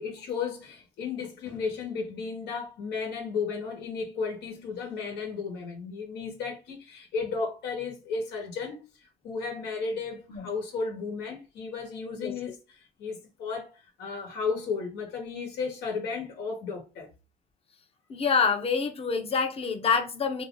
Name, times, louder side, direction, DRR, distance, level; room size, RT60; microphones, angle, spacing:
voice 1, 0.0-8.8 9.2-12.6 13.0-17.1, left 5 dB, 80° left, 1.4 m, -34 dB
voice 2, 18.1-20.4, left 5 dB, 35° left, 0.9 m, -26 dB
2.9 x 2.5 x 3.8 m
cardioid pair, 110°, 17 cm